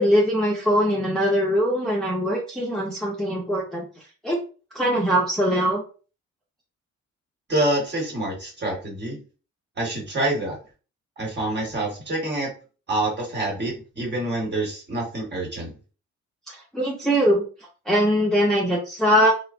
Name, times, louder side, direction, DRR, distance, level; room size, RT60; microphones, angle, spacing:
voice 1, 0.0-3.9 4.2-4.4 4.7-5.8 16.5-17.4 17.9-19.3, equal, ahead, -3 dB, 0.6 m, -21 dB
voice 2, 7.5-9.2 9.8-10.6 11.2-12.5 12.9-15.7, right 1 dB, 35° right, -1 dB, 1.3 m, -26 dB
3.1 x 2.1 x 2.5 m, 0.36 s
cardioid pair, 90°, 30 cm